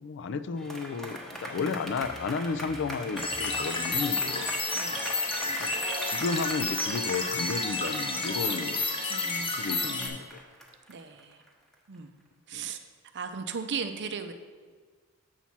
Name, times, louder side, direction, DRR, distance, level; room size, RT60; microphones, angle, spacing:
voice 1, 0.0-4.5 5.4-5.7 6.0-8.8 9.6-10.4 12.5-12.7, left 5 dB, 55° left, 11 dB, 0.4 m, -33 dB
sound 1, 0.6-12.0, equal, ahead, 0.9 m, -41 dB
sound 2, 3.2-10.1, left 3 dB, 25° left, 0.8 m, -30 dB
voice 2, 4.7-5.1 9.1-9.6 10.9-11.4 11.9-12.1 12.5-12.8 13.1-14.3, right 6 dB, 55° right, 8 dB, 0.5 m, -36 dB
7.2 x 4.2 x 5.9 m, 1.5 s
head